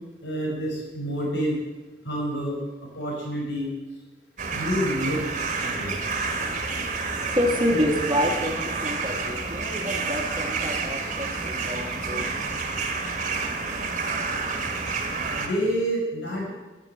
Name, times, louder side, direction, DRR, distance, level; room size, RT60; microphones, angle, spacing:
voice 1, 0.2-1.6 2.0-2.6 2.9-3.7 4.5-5.2 5.6-6.0 15.4-16.5, equal, 70° left, -1 dB, 5.3 m, -28 dB
sound 1, 4.4-15.5, right 4 dB, 40° right, 1.7 m, -29 dB
voice 2, 6.4-12.3, left 1 dB, 25° right, 2 dB, 1.7 m, -28 dB
13.0 x 9.8 x 7.7 m, 1.2 s
head